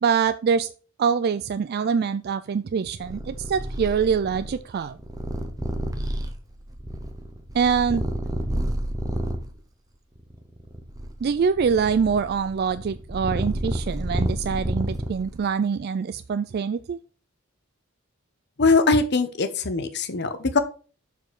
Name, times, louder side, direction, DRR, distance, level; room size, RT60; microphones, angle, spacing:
voice 1, 0.0-0.7 1.0-5.0 7.5-8.1 11.2-17.0, right 6 dB, 50° right, 12 dB, 0.3 m, -24 dB
Purr, 3.0-9.5 10.2-15.4, equal, 15° right, 0.8 m, -30 dB
voice 2, 18.6-20.6, left 3 dB, 55° left, 9 dB, 1.0 m, -21 dB
7.0 x 4.6 x 4.8 m, 0.36 s
head